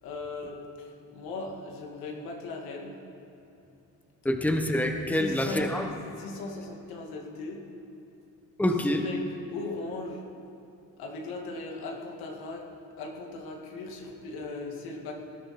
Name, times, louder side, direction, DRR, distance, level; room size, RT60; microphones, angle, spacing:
voice 1, 0.0-3.0 5.1-5.9 6.2-7.6 9.0-9.2 9.5-10.2 11.0-12.7 13.0-15.1, left 3 dB, 85° left, 0 dB, 2.3 m, -38 dB
voice 2, 4.2-5.9 8.6-9.0, left 1 dB, 5° left, 4 dB, 1.3 m, -26 dB
19.0 x 11.0 x 4.4 m, 2.9 s
cardioid pair, 90°, 36 cm